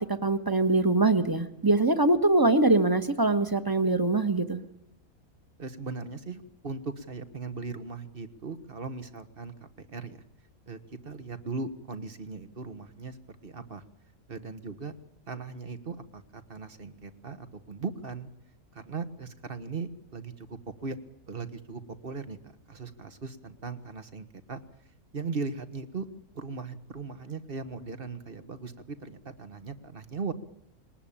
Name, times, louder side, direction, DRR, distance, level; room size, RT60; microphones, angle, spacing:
voice 1, 0.0-4.6, right 2 dB, 15° right, 11 dB, 1.4 m, -23 dB
voice 2, 5.6-10.2 10.7-13.8 14.3-14.9 15.3-18.3 18.7-21.0 21.3-24.6 25.1-26.1 26.3-30.3, right 4 dB, 40° right, 11 dB, 1.6 m, -38 dB
21.0 x 19.0 x 8.7 m, 0.77 s
omnidirectional pair, 1.5 m